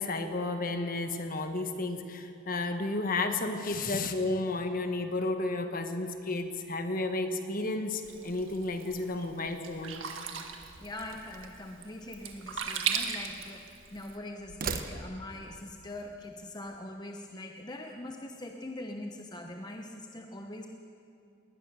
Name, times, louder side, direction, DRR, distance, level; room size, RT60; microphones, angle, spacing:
voice 1, 0.0-10.0, left 2 dB, 45° left, 6 dB, 1.5 m, -32 dB
Sink (filling or washing), 8.0-14.2, right 7 dB, 70° right, 1.7 m, -38 dB
voice 2, 10.8-20.7, left 1 dB, 20° left, 3 dB, 0.9 m, -42 dB
sound 1, 11.0-11.7 12.6-13.7 14.4-15.4, right 4 dB, 45° right, 1.1 m, -41 dB
20.0 x 19.5 x 6.8 m, 2.6 s
head